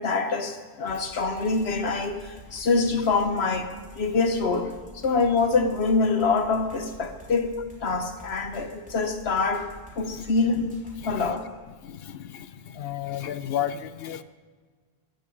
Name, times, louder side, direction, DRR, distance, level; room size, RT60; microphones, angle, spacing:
voice 1, 0.0-7.5 7.8-10.6 11.1-11.5, left 4 dB, 90° left, 1.4 m, -25 dB
sound 1, 0.9-11.5, equal, 5° right, 3.2 m, -48 dB
voice 2, 11.0-11.3 11.8-14.2, left 10 dB, 75° left, 0.9 m, -33 dB
16.0 x 8.1 x 6.5 m
omnidirectional pair, 1.0 m